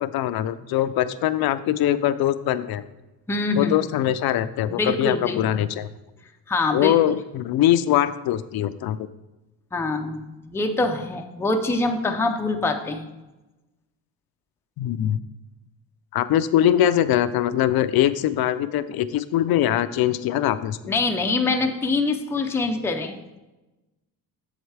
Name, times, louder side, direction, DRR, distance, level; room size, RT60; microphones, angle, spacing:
voice 1, 0.0-2.8 3.6-5.9 6.7-9.1 14.8-15.2 16.1-21.0, left 12 dB, 75° left, 13 dB, 0.5 m, -22 dB
voice 2, 3.3-3.7 4.7-5.6 6.5-6.9 9.7-13.1 20.9-23.2, left 3 dB, 5° left, 4 dB, 0.4 m, -24 dB
7.8 x 7.3 x 3.3 m, 1.0 s
cardioid pair, 170°, 37 cm